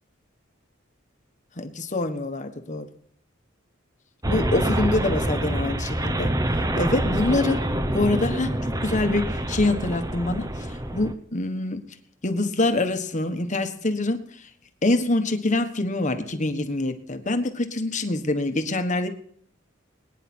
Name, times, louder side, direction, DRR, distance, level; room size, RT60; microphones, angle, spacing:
voice 1, 1.6-2.9 4.2-6.3 6.7-7.6 7.9-11.8 12.2-14.5 14.8-19.1, left 2 dB, 40° left, 7 dB, 1.4 m, -25 dB
sound 1, 4.2-11.1, right 1 dB, 20° right, 1.0 m, -26 dB
22.0 x 10.0 x 4.4 m, 0.62 s
head